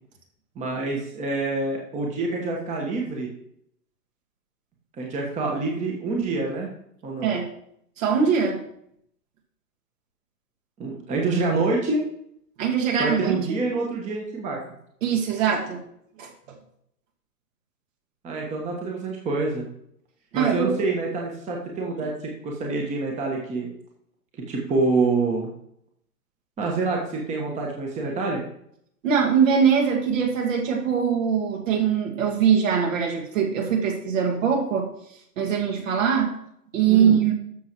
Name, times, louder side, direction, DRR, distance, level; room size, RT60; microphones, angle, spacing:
voice 1, 0.5-3.3 5.0-6.7 7.0-7.3 10.8-12.0 13.0-14.6 18.2-19.7 20.3-22.1 22.4-23.7 24.5-25.5 26.6-28.4 36.9-37.2, right 3 dB, 15° right, -1 dB, 1.2 m, -26 dB
voice 2, 8.0-8.6 12.6-13.6 15.0-15.8 16.2-16.3 20.3-20.7 29.0-34.9 35.4-36.3 36.7-37.3, right 7 dB, 55° right, 1 dB, 2.0 m, -22 dB
13.0 x 6.1 x 3.0 m, 0.71 s
hypercardioid pair, 120°, 47 cm